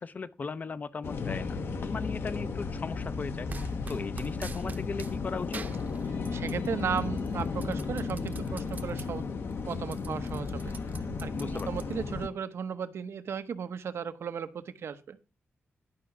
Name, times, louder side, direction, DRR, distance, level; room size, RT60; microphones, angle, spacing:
voice 1, 0.0-5.6 11.3-11.8, left 4 dB, 40° left, 0.6 m, -38 dB
sound 1, 1.0-12.3, left 4 dB, 60° left, 1.0 m, -34 dB
sound 2, 3.5-5.2 5.5-6.7 7.0-9.1 9.5-9.6 9.8-12.2, right 4 dB, 45° right, 0.9 m, -43 dB
voice 2, 6.1-9.2 9.6-10.6 11.2-15.2, right 7 dB, 80° right, 0.9 m, -35 dB
11.5 x 5.6 x 6.0 m
wide cardioid pair, 125°, 4 cm